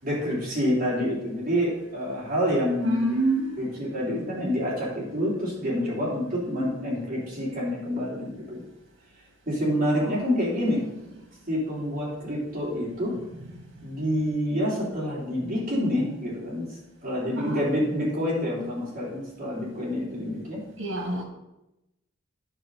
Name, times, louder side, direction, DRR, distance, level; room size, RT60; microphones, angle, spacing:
voice 1, 0.0-3.2 3.6-8.7 9.5-10.8 11.5-13.1 13.8-16.7 17.0-20.6, equal, 45° right, -6 dB, 3.2 m, -27 dB
voice 2, 2.8-3.6 10.0-10.2 10.5-10.8 13.4-13.5 17.3-17.6 20.8-21.2, right 2 dB, 80° right, 2 dB, 2.0 m, -28 dB
9.7 x 5.8 x 3.9 m, 0.92 s
head